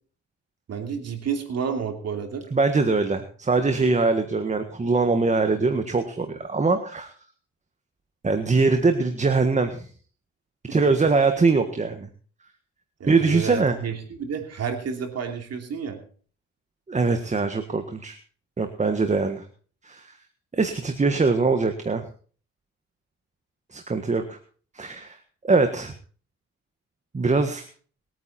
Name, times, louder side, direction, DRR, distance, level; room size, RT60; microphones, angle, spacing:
voice 1, 0.7-2.5 10.7-10.8 13.0-16.0, right 6 dB, 55° right, 4 dB, 3.0 m, -30 dB
voice 2, 2.5-7.1 8.2-9.9 10.7-12.1 13.1-13.8 16.9-18.2 18.6-19.4 19.8-20.1 20.5-22.0 23.7-24.4 24.7-25.2 25.4-25.9 27.1-27.7, right 3 dB, 25° right, 7 dB, 1.5 m, -22 dB
21.5 x 9.3 x 4.3 m, 0.42 s
cardioid pair, 90°, 30 cm